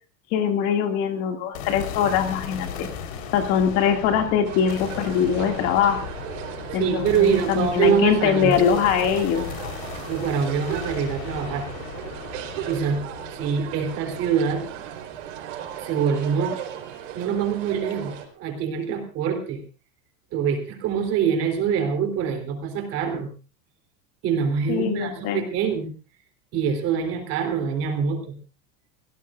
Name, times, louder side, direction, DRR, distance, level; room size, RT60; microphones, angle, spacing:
voice 1, 0.3-2.9 3.3-6.0 6.7-9.7 24.7-25.4, left 8 dB, 40° left, 4 dB, 2.4 m, -22 dB
sound 1, 1.5-15.8, left 7 dB, 90° left, 4.2 m, -37 dB
sound 2, 4.4-18.2, right 11 dB, 70° right, 4.3 m, -36 dB
voice 2, 6.7-8.6 10.1-11.7 12.7-13.0 13.3-14.7 15.8-16.6 17.1-19.6 20.3-23.3 24.2-25.9 26.5-28.4, right 7 dB, 35° right, 5 dB, 3.5 m, -24 dB
25.0 x 17.5 x 2.5 m, 0.34 s
supercardioid pair, 175°, 38 cm